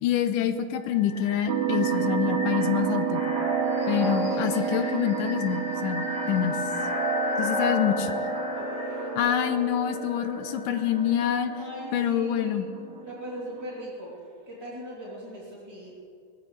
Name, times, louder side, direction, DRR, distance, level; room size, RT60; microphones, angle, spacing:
voice 1, 0.0-3.2 3.9-6.6 7.4-8.1 9.2-11.5 11.9-12.7, left 9 dB, 85° left, 9 dB, 2.4 m, -26 dB
sound 1, 0.8-11.6, equal, 35° left, 5.3 m, -32 dB
sound 2, 1.5-13.9, right 9 dB, 80° right, 2.2 m, -32 dB
voice 2, 8.5-9.1 11.6-12.6 13.0-14.1 14.5-15.9, equal, 10° right, -9 dB, 2.8 m, -40 dB
23.0 x 15.5 x 3.3 m, 2.5 s
omnidirectional pair, 3.7 m